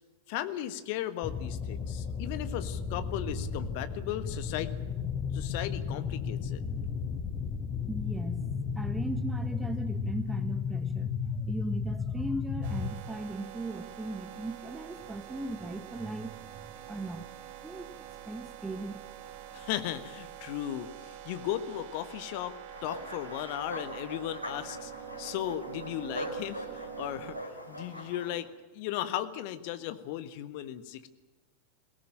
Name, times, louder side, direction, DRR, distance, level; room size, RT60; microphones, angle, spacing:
voice 1, 0.3-4.7 5.3-6.6 19.5-20.9 21.2-22.6 22.8-24.9 25.2-28.5 28.7-31.1, left 12 dB, 45° left, 12 dB, 1.6 m, -36 dB
sound 1, 1.2-12.9, left 6 dB, 25° left, 4.1 m, -34 dB
voice 2, 7.9-17.3 17.6-18.0 18.2-19.0, right 2 dB, 10° right, 10 dB, 1.5 m, -38 dB
sound 2, 12.6-27.4, right 11 dB, 50° right, 2.0 m, -46 dB
sound 3, 22.7-28.4, equal, 90° right, 4.1 m, -42 dB
22.0 x 18.0 x 8.9 m, 1.2 s
figure-of-eight pair, 90°, 0 cm